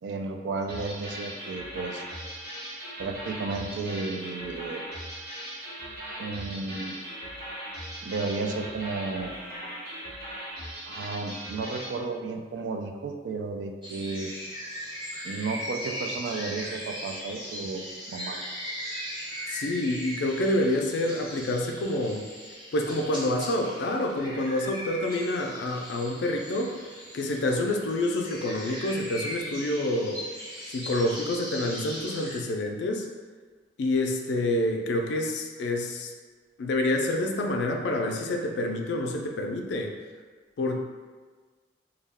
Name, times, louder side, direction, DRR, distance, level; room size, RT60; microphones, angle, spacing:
voice 1, 0.0-2.0 3.0-4.8 6.2-6.9 8.0-9.3 10.9-14.3 15.2-17.8 18.1-18.4, right 3 dB, 90° right, 4 dB, 0.3 m, -33 dB
sound 1, 0.7-12.0, equal, 65° right, 0.9 m, -39 dB
sound 2, 13.8-32.4, equal, 25° right, 0.6 m, -39 dB
voice 2, 19.5-22.3 22.7-26.8 27.1-30.2 30.7-33.1 33.8-36.1 36.6-39.9 40.6-40.8, left 1 dB, 80° left, 2 dB, 0.4 m, -27 dB
2.2 x 2.1 x 3.4 m, 1.4 s
head